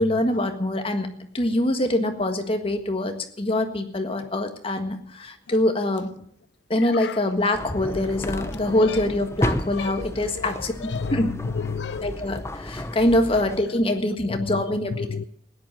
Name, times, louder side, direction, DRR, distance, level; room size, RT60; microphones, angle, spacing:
voice 1, 0.0-6.1 6.7-10.7 11.1-11.3 12.0-15.1, left 1 dB, 30° left, 1.6 m, -24 dB
sound 1, 7.5-13.6, left 1 dB, 15° left, 0.6 m, -32 dB
voice 2, 10.9-12.1 14.9-15.2, left 5 dB, 70° left, 0.5 m, -30 dB
15.5 x 10.0 x 7.5 m
head